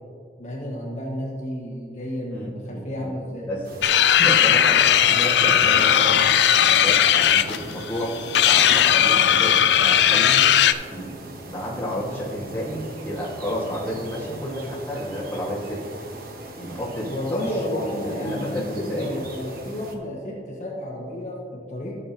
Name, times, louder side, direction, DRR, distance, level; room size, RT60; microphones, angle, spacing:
voice 1, 0.4-3.5 17.1-22.0, left 1 dB, 40° left, -3 dB, 1.5 m, -31 dB
voice 2, 2.3-3.1 3.5-3.7 4.2-4.8 5.1-6.2 6.6-10.4 10.9-15.8 16.6-17.4 17.9-19.2, equal, 15° left, -6 dB, 1.7 m, -31 dB
sound 1, 3.6-20.0, right 1 dB, 55° right, 1.0 m, -40 dB
sound 2, 3.8-10.7, left 10 dB, 70° left, 0.4 m, -17 dB
14.5 x 6.9 x 2.9 m, 2.2 s
head